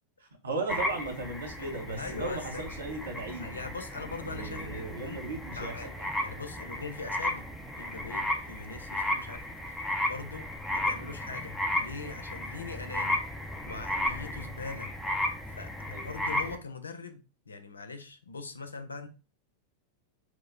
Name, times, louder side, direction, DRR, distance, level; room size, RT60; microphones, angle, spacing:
voice 1, 0.4-3.6 4.1-6.1 15.8-16.1, right 3 dB, 70° right, 0.9 m, -36 dB
sound 1, 0.7-16.6, left 1 dB, 5° left, 0.6 m, -34 dB
voice 2, 1.6-2.6 3.4-5.2 5.6-5.9 6.2-7.5 7.8-13.2 13.7-14.9 15.6-15.7 16.0-17.2 17.5-19.1, left 4 dB, 75° left, 0.5 m, -41 dB
4.5 x 2.1 x 2.6 m
figure-of-eight pair, 90°, 0 cm